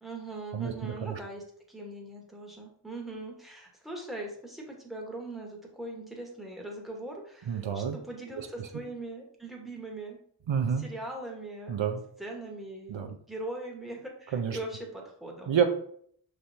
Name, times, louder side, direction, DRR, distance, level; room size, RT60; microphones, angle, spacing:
voice 1, 0.0-10.2 10.8-11.9 12.2-15.6, right 2 dB, ahead, -1 dB, 1.1 m, -41 dB
voice 2, 0.5-1.2 7.5-8.0 8.6-8.7 10.5-10.9 11.7-12.0 12.9-13.1 14.3-14.6 15.5-15.6, right 7 dB, 75° right, 6 dB, 0.6 m, -29 dB
5.7 x 3.2 x 2.7 m, 0.62 s
wide cardioid pair, 50°, 45 cm